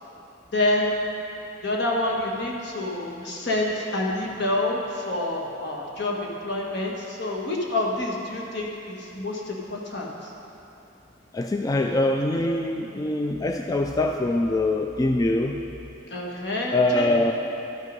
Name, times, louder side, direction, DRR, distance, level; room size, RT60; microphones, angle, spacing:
voice 1, 0.5-1.0 1.6-10.3 12.3-12.4 16.1-17.3, left 1 dB, 65° left, -2 dB, 1.4 m, -27 dB
voice 2, 11.3-15.6 16.7-17.3, left 2 dB, 20° left, 3 dB, 0.3 m, -23 dB
12.0 x 6.4 x 5.3 m, 2.9 s
head